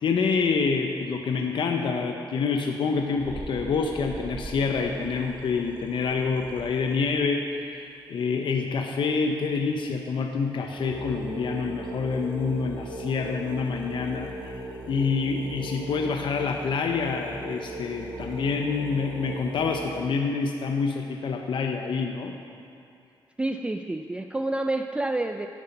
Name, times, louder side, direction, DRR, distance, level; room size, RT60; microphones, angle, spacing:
voice 1, 0.0-7.8 8.1-22.4, left 5 dB, 70° left, 3 dB, 0.7 m, -27 dB
sound 1, 3.2-7.1 9.8-10.0 10.4-10.5 10.6-20.0, right 2 dB, 55° right, 1.7 m, -39 dB
voice 2, 23.4-25.5, right 2 dB, 10° right, 6 dB, 0.3 m, -28 dB
9.7 x 8.0 x 5.4 m, 2.5 s
cardioid pair, 95°, 9 cm